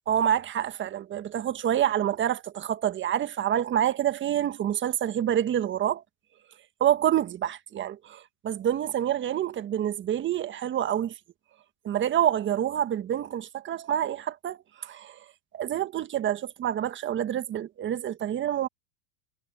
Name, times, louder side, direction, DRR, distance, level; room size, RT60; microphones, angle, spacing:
voice 1, 0.1-6.0 6.8-11.1 11.8-15.2 15.5-18.7, right 10 dB, 25° right, 1.5 m, -27 dB
hypercardioid pair, 120°, 49 cm